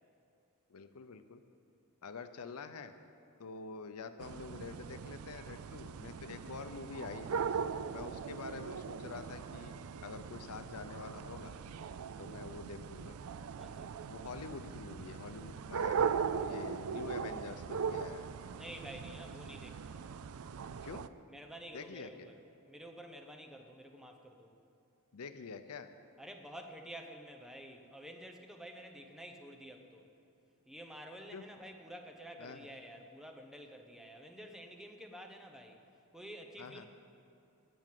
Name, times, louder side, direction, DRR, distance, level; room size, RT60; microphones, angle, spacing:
voice 1, 0.7-1.4 2.0-2.9 3.4-7.4 7.9-9.7 10.0-11.5 12.2-13.2 14.1-18.3 20.8-21.1 21.7-22.3 25.1-25.9 31.3-31.4 32.4-32.6 36.6-36.9, left 4 dB, 85° left, 9 dB, 0.6 m, -46 dB
sound 1, 4.2-21.1, right 6 dB, 75° right, 0.4 m, -40 dB
voice 2, 13.6-13.9 18.6-20.2 21.3-22.4 22.7-24.5 26.2-30.1 30.7-35.8 36.1-36.9, equal, ahead, 3 dB, 0.9 m, -50 dB
18.0 x 6.3 x 7.5 m, 2.6 s
head